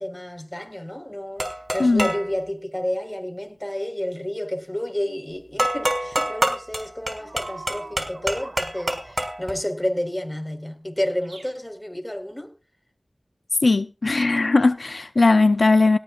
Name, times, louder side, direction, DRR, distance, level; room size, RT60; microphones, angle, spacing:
voice 1, 0.0-12.5, left 1 dB, 15° left, 4.3 m, -30 dB
sound 1, 1.4-2.3 5.6-9.5, right 1 dB, 35° right, 4.4 m, -26 dB
sound 2, 7.2-9.2 11.2-11.6, right 2 dB, 75° right, 4.6 m, -42 dB
voice 2, 13.6-16.0, left 3 dB, 75° left, 0.7 m, -18 dB
18.0 x 14.0 x 2.4 m
wide cardioid pair, 45°, 0 cm